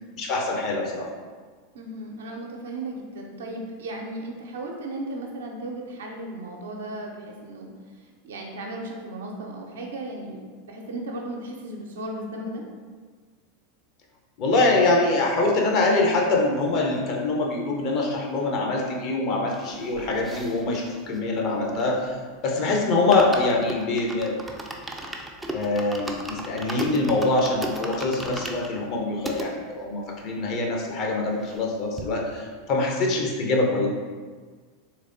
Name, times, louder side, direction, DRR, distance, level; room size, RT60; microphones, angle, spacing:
voice 1, 0.2-1.1 14.4-22.1 22.4-24.4 25.5-33.9, left 2 dB, 40° left, 0 dB, 0.6 m, -24 dB
voice 2, 1.7-7.7 8.0-12.6 22.7-23.0, right 1 dB, 65° right, 0 dB, 0.5 m, -35 dB
sound 1, 19.5-22.3 22.6-22.7 22.9-29.5 30.1-30.2 30.3-30.4 30.7-31.7 32.0-32.1, equal, 5° right, 0.4 m, -36 dB
3.3 x 3.2 x 2.5 m, 1.5 s
figure-of-eight pair, 85°, 0 cm